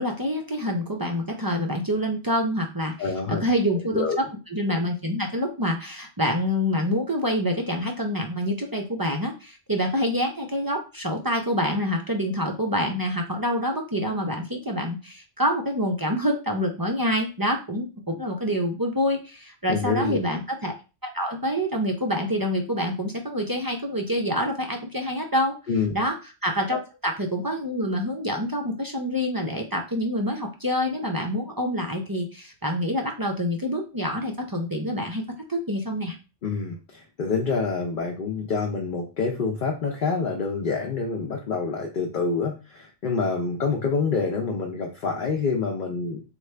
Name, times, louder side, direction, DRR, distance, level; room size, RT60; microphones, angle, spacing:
voice 1, 0.0-4.2 4.5-20.7 21.0-25.5 25.9-26.1 26.4-35.2 35.5-36.1, equal, 30° right, 1 dB, 0.4 m, -26 dB
voice 2, 3.0-3.5 3.9-4.2 19.7-20.2 25.7-26.0 36.4-46.2, left 4 dB, 55° left, 1 dB, 0.7 m, -27 dB
4.4 x 2.4 x 3.2 m, 0.31 s
omnidirectional pair, 1.1 m